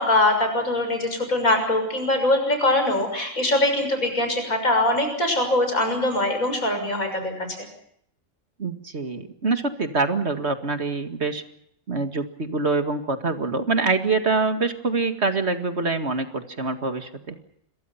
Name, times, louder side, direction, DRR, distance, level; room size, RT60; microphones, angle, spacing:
voice 1, 0.0-7.7, left 1 dB, 85° left, 6 dB, 6.8 m, -22 dB
voice 2, 8.6-11.4 11.9-17.4, right 3 dB, 55° right, 7 dB, 2.3 m, -25 dB
28.0 x 23.0 x 5.8 m, 0.69 s
omnidirectional pair, 1.4 m